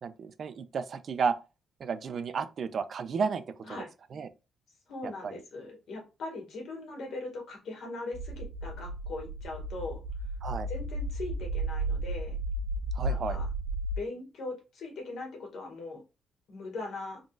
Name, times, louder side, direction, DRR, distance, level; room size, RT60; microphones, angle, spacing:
voice 1, 0.0-1.4 1.8-3.8 4.1-4.3 5.2-5.3 10.4-10.7 12.9-13.4, right 5 dB, 40° right, 0.4 m, -32 dB
voice 2, 4.9-10.0 10.7-12.4 13.0-13.5 14.0-16.0 16.5-17.2, left 2 dB, 60° left, 1.8 m, -40 dB
sound 1, 8.1-14.0, right 1 dB, 80° right, 1.4 m, -34 dB
3.8 x 3.7 x 2.4 m
cardioid pair, 170°, 0 cm